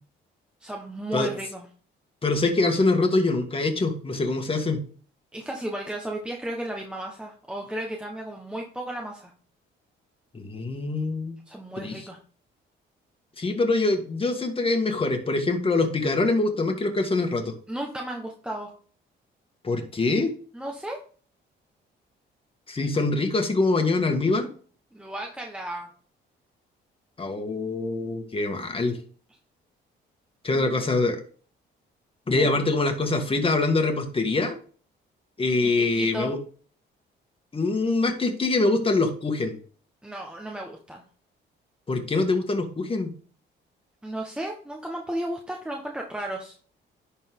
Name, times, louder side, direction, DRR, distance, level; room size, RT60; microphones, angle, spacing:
voice 1, 0.6-1.6 5.3-9.3 11.5-12.2 17.7-18.7 20.5-21.0 24.9-25.9 30.5-30.7 32.4-32.5 35.6-36.3 40.0-41.0 44.0-46.6, right 1 dB, 5° right, 0 dB, 1.4 m, -34 dB
voice 2, 2.2-4.8 10.3-11.4 11.8-12.1 13.4-17.5 19.6-20.3 22.7-24.5 27.2-29.0 30.4-31.2 32.3-34.6 35.4-36.4 37.5-39.6 41.9-43.1, left 3 dB, 25° left, 5 dB, 1.9 m, -24 dB
11.0 x 4.4 x 3.7 m, 0.42 s
cardioid pair, 90°, 20 cm